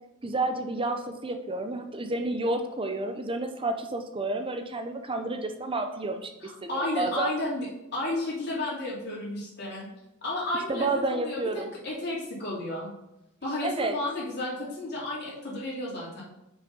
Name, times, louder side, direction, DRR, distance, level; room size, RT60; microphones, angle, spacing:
voice 1, 0.2-7.3 10.7-11.7 13.6-14.0, right 2 dB, 25° right, 6 dB, 0.6 m, -30 dB
voice 2, 6.4-7.7 7.9-9.9 10.2-12.9 13.4-16.2, left 1 dB, 50° left, -6 dB, 3.3 m, -32 dB
6.4 x 6.0 x 5.4 m, 0.88 s
head